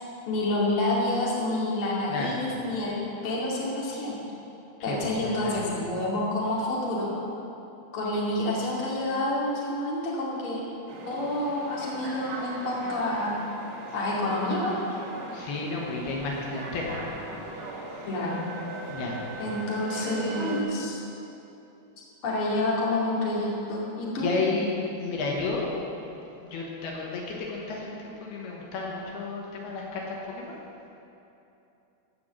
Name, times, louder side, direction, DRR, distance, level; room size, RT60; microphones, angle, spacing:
voice 1, 0.3-4.2 4.8-7.1 7.9-10.6 11.1-13.4 13.9-14.8 18.1-18.5 19.4-21.0 22.2-24.3, left 1 dB, 40° left, -5 dB, 2.8 m, -28 dB
voice 2, 2.1-2.4 4.8-5.6 15.3-17.2 18.9-19.3 24.2-25.7 26.4-30.6, left 3 dB, 80° left, -2 dB, 3.3 m, -32 dB
sound 1, 10.9-20.6, right 2 dB, 75° right, 3.9 m, -38 dB
16.5 x 6.0 x 7.4 m, 2.9 s
omnidirectional pair, 4.6 m